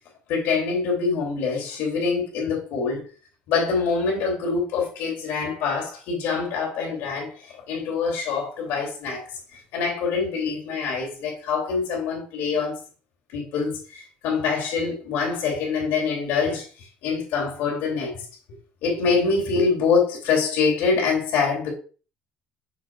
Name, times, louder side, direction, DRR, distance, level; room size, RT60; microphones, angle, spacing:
voice 1, 0.3-3.0 3.5-9.2 9.7-12.8 13.3-16.6 17.0-18.2 18.8-21.7, left 5 dB, 75° left, 3.0 m, -25 dB
6.7 x 6.5 x 2.4 m
cardioid pair, 135°, 3 cm